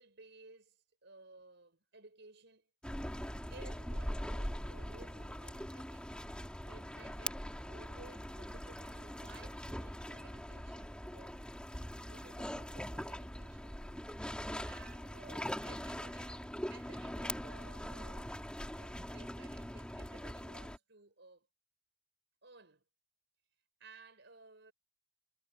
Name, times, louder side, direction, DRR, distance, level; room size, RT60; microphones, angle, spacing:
voice 1, 0.0-2.7 3.5-11.4 12.1-13.8 14.6-21.5 22.4-22.8 23.8-24.7, right 3 dB, 60° right, 5.5 m, -58 dB
sound 1, 2.8-20.8, equal, 5° left, 2.7 m, -42 dB
head